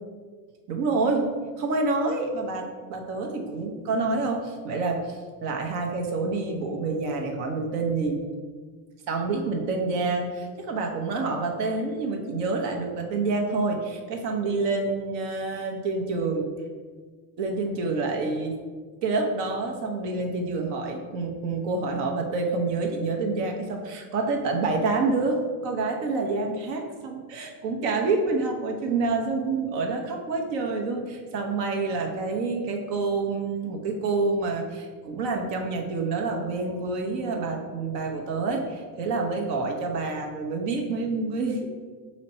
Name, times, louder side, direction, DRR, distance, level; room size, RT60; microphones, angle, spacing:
voice 1, 0.7-1.3 1.6-8.2 9.1-16.5 17.4-18.5 19.0-41.7, right 3 dB, 80° right, 2 dB, 1.0 m, -27 dB
4.1 x 3.0 x 4.2 m, 1.5 s
supercardioid pair, 120°, 47 cm